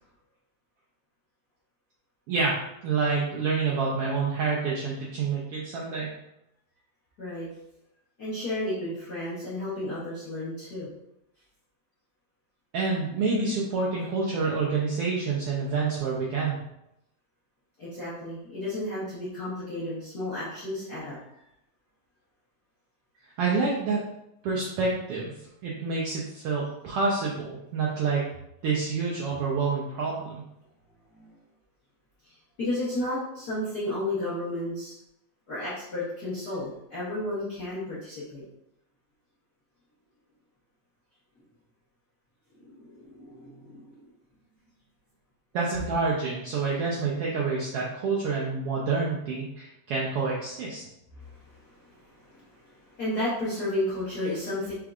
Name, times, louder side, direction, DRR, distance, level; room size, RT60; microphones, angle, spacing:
voice 1, 2.3-6.2 12.7-16.6 23.4-24.1 24.4-25.3 25.6-28.2 28.6-30.4 45.5-50.8, right 4 dB, 80° right, -4 dB, 1.3 m, -28 dB
voice 2, 7.2-7.5 8.2-10.9 17.8-21.2 31.1-31.3 32.2-35.0 35.5-38.4 42.6-44.0 51.2-54.7, left 1 dB, 60° left, -11 dB, 1.0 m, -33 dB
5.1 x 3.5 x 2.3 m, 0.82 s
omnidirectional pair, 3.3 m